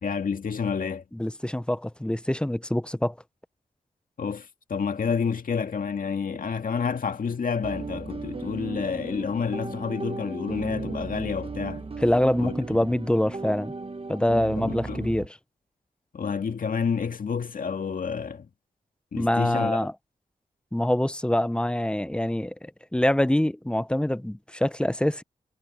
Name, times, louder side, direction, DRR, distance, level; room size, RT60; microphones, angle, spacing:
voice 1, 0.0-1.0 4.2-11.8 12.4-12.5 14.6-15.1 16.1-18.5 19.1-19.8, left 6 dB, 70° left, 2.0 m, -29 dB
voice 2, 1.1-3.1 12.0-13.7 14.1-15.4 19.2-19.9 20.7-25.2, left 1 dB, 5° left, 0.7 m, -25 dB
sound 1, 7.6-15.3, right 3 dB, 40° right, 1.3 m, -35 dB
cardioid pair, 50°, 15 cm